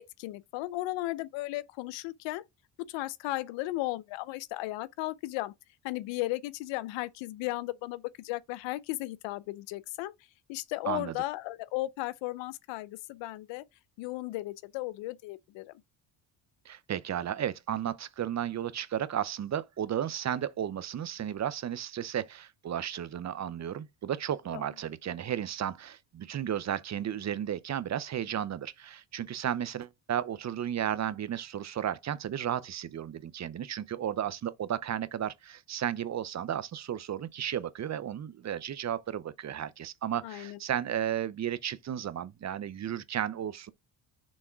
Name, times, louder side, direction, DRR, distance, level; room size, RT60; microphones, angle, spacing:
voice 1, 0.0-2.4 2.9-5.5 5.8-10.1 10.5-13.6 14.0-15.7 24.5-24.6 40.2-40.6, left 18 dB, 85° left, 0.7 m, -35 dB
voice 2, 16.6-43.7, right 10 dB, 40° right, 0.7 m, -34 dB
6.3 x 3.5 x 4.5 m
cardioid pair, 90°, 44 cm